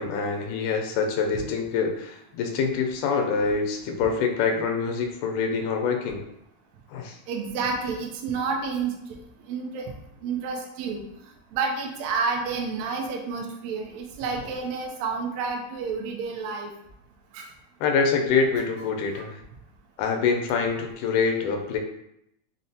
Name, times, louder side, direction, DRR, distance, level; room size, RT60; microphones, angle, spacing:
voice 1, 0.0-6.2 6.9-7.2 17.8-19.4 20.0-21.8, left 5 dB, 90° left, 3 dB, 2.1 m, -25 dB
voice 2, 7.3-9.2 9.5-9.9 10.2-11.0 11.5-16.7 17.3-17.5 19.1-19.2, right 4 dB, 80° right, 1 dB, 1.5 m, -30 dB
5.6 x 2.0 x 2.7 m, 0.78 s
omnidirectional pair, 3.5 m